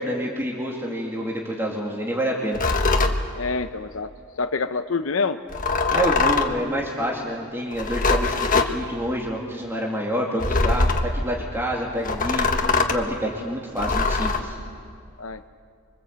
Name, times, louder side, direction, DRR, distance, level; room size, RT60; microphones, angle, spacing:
voice 1, 0.0-2.6 5.9-12.5 12.7-14.6, equal, 10° right, -2 dB, 2.4 m, -27 dB
sound 1, 2.5-3.2 5.5-6.6 7.7-8.7 10.4-11.1 12.0-13.0 13.8-14.4, left 3 dB, 40° left, 1.5 m, -22 dB
voice 2, 3.3-4.1 4.4-5.4 15.2-15.5, left 4 dB, 65° left, 9 dB, 0.7 m, -26 dB
25.5 x 24.5 x 8.1 m, 2.2 s
head